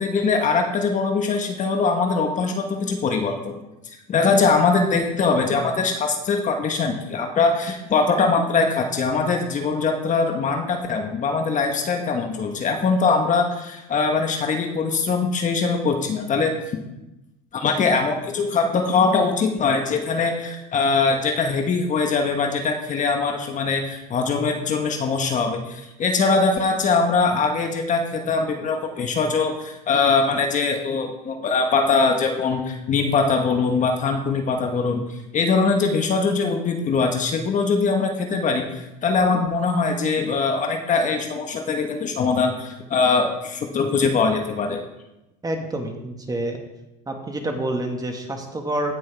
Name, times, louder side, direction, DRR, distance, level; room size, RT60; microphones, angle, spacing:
voice 1, 0.0-3.6 4.1-16.6 17.5-35.0 35.3-44.8, left 4 dB, 35° left, 4 dB, 1.3 m, -22 dB
voice 2, 45.4-46.6 47.1-48.9, right 1 dB, 15° right, 3 dB, 1.7 m, -28 dB
17.0 x 6.2 x 3.5 m, 0.92 s
supercardioid pair, 95°, 21 cm